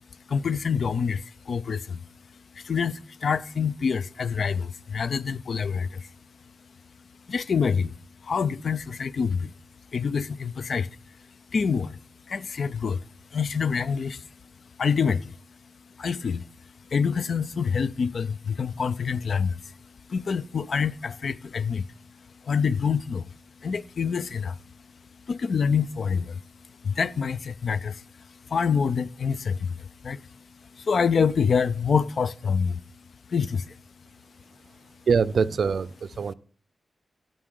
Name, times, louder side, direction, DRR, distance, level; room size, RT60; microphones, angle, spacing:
voice 1, 0.3-2.1 2.5-6.1 7.3-9.5 9.9-11.1 11.5-12.0 12.3-13.0 13.3-14.3 14.8-15.4 16.0-21.9 22.2-24.6 25.3-26.4 26.8-32.8 33.3-33.8, left 6 dB, 65° left, 0.4 m, -27 dB
voice 2, 35.1-36.3, right 5 dB, 70° right, 0.4 m, -24 dB
11.0 x 3.9 x 6.2 m
cardioid pair, 70°, 0 cm